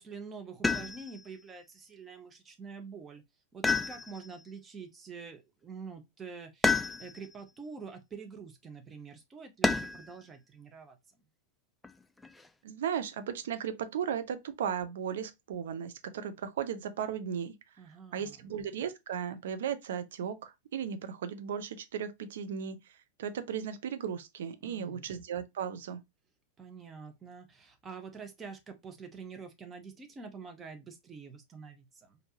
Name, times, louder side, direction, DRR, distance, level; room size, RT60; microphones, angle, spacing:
voice 1, 0.0-3.2 3.5-11.0 17.8-18.5 24.6-25.1 26.6-32.2, right 5 dB, 20° right, 0.9 m, -46 dB
sound 1, 0.6-1.3 3.6-4.4 6.6-7.3 9.6-10.2 11.8-12.5, left 4 dB, 5° left, 0.3 m, -30 dB
voice 2, 12.6-17.5 18.1-22.8 23.2-26.0, right 8 dB, 60° right, 0.5 m, -36 dB
4.4 x 2.6 x 2.9 m
figure-of-eight pair, 90°, 0 cm